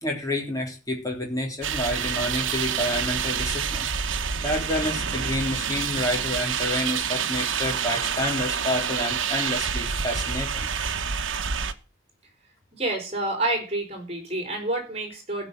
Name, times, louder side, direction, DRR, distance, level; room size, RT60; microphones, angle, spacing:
voice 1, 0.0-4.2 4.4-10.7, left 1 dB, 20° left, 1 dB, 3.5 m, -29 dB
sound 1, 1.6-11.7, right 7 dB, 80° right, 1.1 m, -28 dB
voice 2, 12.7-15.5, right 2 dB, 30° right, 4 dB, 4.4 m, -28 dB
15.5 x 5.5 x 7.9 m, 0.34 s
head